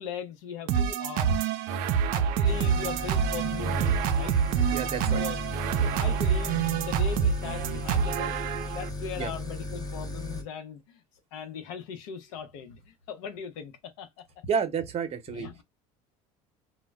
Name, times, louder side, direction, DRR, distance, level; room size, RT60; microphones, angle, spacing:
voice 1, 0.0-1.5 2.1-4.4 5.1-5.4 5.8-8.4 8.7-11.0 11.3-14.1 15.3-15.6, left 7 dB, 80° left, 0.7 m, -39 dB
sound 1, 0.7-8.9, right 7 dB, 65° right, 0.4 m, -27 dB
sound 2, 2.4-10.4, left 2 dB, 25° left, 0.7 m, -36 dB
voice 2, 4.7-5.2 9.2-9.3 14.5-15.5, right 7 dB, 40° right, 0.8 m, -30 dB
2.1 x 2.0 x 3.3 m
supercardioid pair, 85°, 16 cm